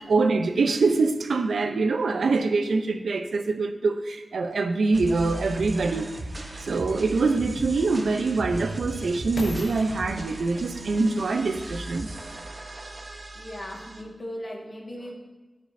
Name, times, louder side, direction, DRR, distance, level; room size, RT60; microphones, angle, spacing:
voice 1, 0.1-6.1 6.6-12.1, right 3 dB, 90° right, 7 dB, 0.5 m, -24 dB
sound 1, 4.9-14.0, right 2 dB, 40° right, 0.8 m, -37 dB
sound 2, 6.3-6.4 7.2-12.5 13.1-13.2, left 2 dB, 70° left, 0.8 m, -42 dB
voice 2, 13.3-15.1, equal, 25° left, -1 dB, 1.6 m, -37 dB
13.0 x 5.1 x 2.6 m, 1.2 s
wide cardioid pair, 100°, 0 cm